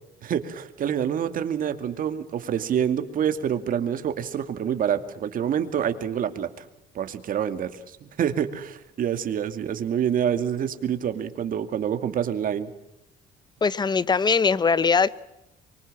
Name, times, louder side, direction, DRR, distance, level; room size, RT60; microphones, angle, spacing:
voice 1, 0.2-6.5 6.9-12.7, right 9 dB, 55° right, 2.3 m, -27 dB
voice 2, 13.6-15.1, left 5 dB, 25° left, 1.0 m, -21 dB
25.0 x 24.0 x 7.5 m
cardioid pair, 110°, 17 cm